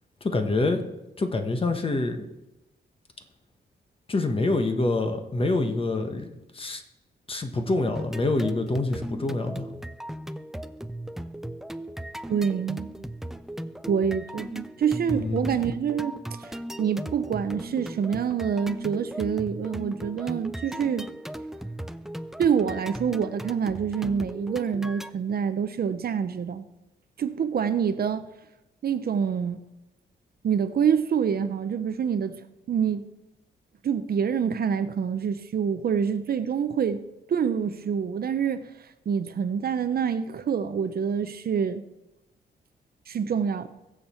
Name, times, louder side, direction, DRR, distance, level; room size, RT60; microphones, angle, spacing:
voice 1, 0.2-0.8 1.2-2.3 4.1-6.3 6.5-6.8 7.3-9.7 15.1-15.8, left 2 dB, 30° left, 1.3 m, -26 dB
sound 1, 7.9-25.1, right 1 dB, ahead, 0.4 m, -37 dB
voice 2, 12.3-12.9 13.9-21.1 22.4-26.6 27.2-28.3 28.8-29.6 30.4-32.4 32.7-33.1 33.8-37.0 37.3-38.7 39.1-41.8 43.1-43.7, right 7 dB, 55° right, 0.7 m, -26 dB
21.5 x 7.3 x 4.4 m
wide cardioid pair, 120°, 18 cm